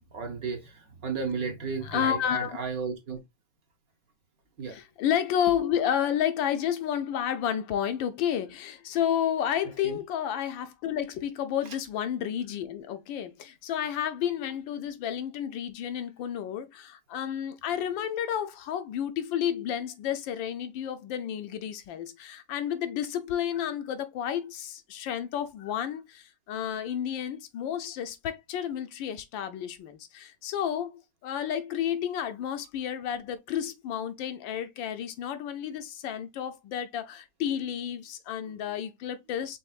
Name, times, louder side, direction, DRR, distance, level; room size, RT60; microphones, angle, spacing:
voice 1, 0.1-3.2 4.6-4.8 9.8-10.0, right 5 dB, 55° right, 1.2 m, -34 dB
voice 2, 1.8-2.6 4.7-39.6, left 9 dB, 75° left, 1.4 m, -31 dB
5.7 x 3.5 x 2.4 m
omnidirectional pair, 2.1 m